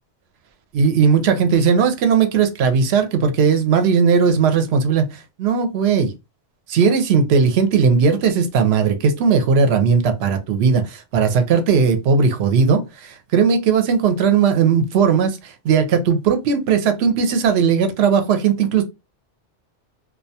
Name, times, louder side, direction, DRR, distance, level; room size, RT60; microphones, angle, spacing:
voice 1, 0.7-6.1 6.7-18.8, right 6 dB, 70° right, 0.8 m, -17 dB
2.3 x 2.2 x 2.7 m
omnidirectional pair, 1.2 m